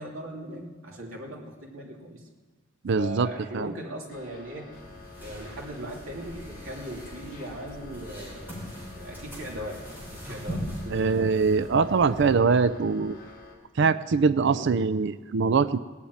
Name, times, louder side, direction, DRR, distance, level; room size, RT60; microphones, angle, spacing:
voice 1, 0.0-2.2 2.9-4.7 5.2-8.5 8.9-11.3 11.9-12.8 14.5-14.7, equal, 80° right, -1 dB, 2.9 m, -39 dB
voice 2, 2.8-3.3 3.5-3.7 10.9-13.2 13.8-15.8, right 5 dB, 60° right, 13 dB, 0.4 m, -23 dB
sound 1, 4.1-13.6, left 3 dB, 40° left, 3.2 m, -48 dB
sound 2, 4.7-12.3, equal, 10° right, 5.8 m, -41 dB
18.5 x 7.2 x 9.5 m, 1.3 s
head